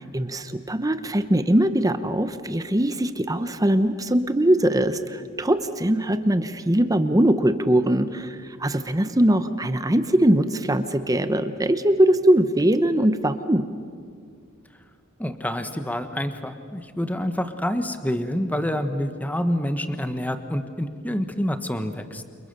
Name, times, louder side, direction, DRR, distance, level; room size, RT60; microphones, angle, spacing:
voice 1, 0.0-13.6, right 1 dB, 15° right, 10 dB, 0.9 m, -21 dB
voice 2, 15.2-22.2, equal, 5° left, 8 dB, 1.2 m, -27 dB
29.0 x 28.0 x 6.8 m, 2.1 s
head